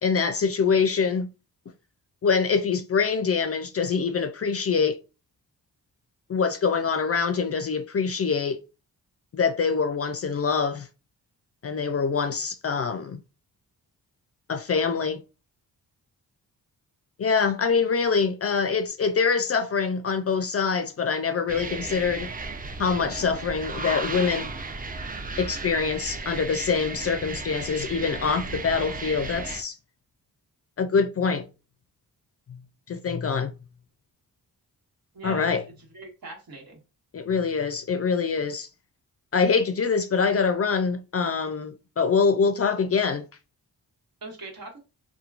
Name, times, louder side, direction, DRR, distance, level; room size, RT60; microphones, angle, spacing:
voice 1, 0.0-1.3 2.2-5.0 6.3-8.6 9.3-10.9 11.6-13.2 14.5-15.2 17.2-22.3 22.8-24.5 25.4-29.8 30.8-31.4 32.5-32.6 32.9-33.5 35.2-35.6 37.1-38.7 39.3-43.2, left 5 dB, 40° left, 0.4 m, -24 dB
sound 1, 21.5-29.6, right 3 dB, 25° right, 0.5 m, -35 dB
voice 2, 35.1-36.8 44.2-44.8, right 2 dB, 60° right, 1.3 m, -41 dB
2.9 x 2.2 x 2.4 m
cardioid pair, 60°, 39 cm